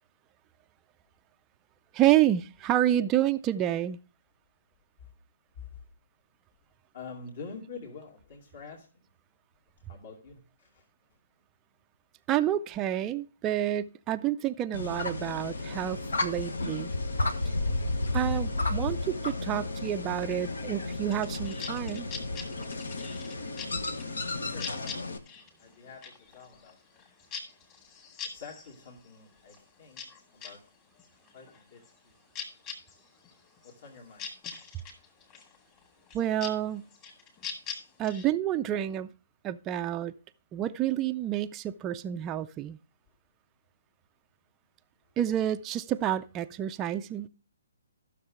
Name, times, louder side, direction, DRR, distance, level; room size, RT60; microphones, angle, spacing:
voice 1, 1.9-4.0 12.3-16.9 18.1-22.1 36.1-36.9 38.0-39.1 39.4-40.1 40.5-42.8 45.2-47.3, right 12 dB, 20° right, 0.4 m, -29 dB
voice 2, 6.9-9.1 9.9-10.9 24.4-24.8 25.6-27.0 28.3-30.0 30.3-30.8 31.3-32.2 33.6-34.4, left 5 dB, 50° left, 2.4 m, -47 dB
sound 1, 14.7-25.2, left 2 dB, 70° left, 1.3 m, -33 dB
sound 2, 21.1-30.6 30.9-38.2, left 6 dB, 25° left, 2.4 m, -43 dB
13.5 x 6.6 x 3.5 m
figure-of-eight pair, 135°, 0 cm